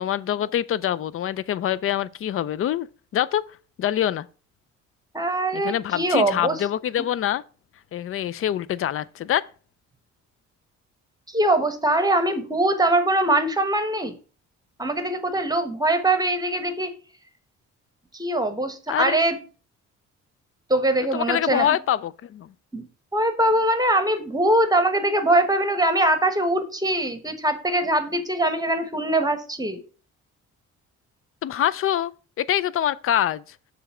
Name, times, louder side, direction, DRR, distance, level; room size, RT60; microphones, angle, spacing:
voice 1, 0.0-2.9 3.1-3.4 3.8-4.3 5.5-7.4 7.9-9.5 18.9-19.2 21.1-22.5 31.4-32.1 32.4-33.6, left 11 dB, 45° left, 0.4 m, -25 dB
voice 2, 5.1-6.6 11.3-14.1 14.8-16.9 18.1-19.4 20.7-21.7 22.7-22.8 23.1-29.8, right 1 dB, 15° right, 1.2 m, -22 dB
6.9 x 3.4 x 6.0 m
cardioid pair, 90°, 30 cm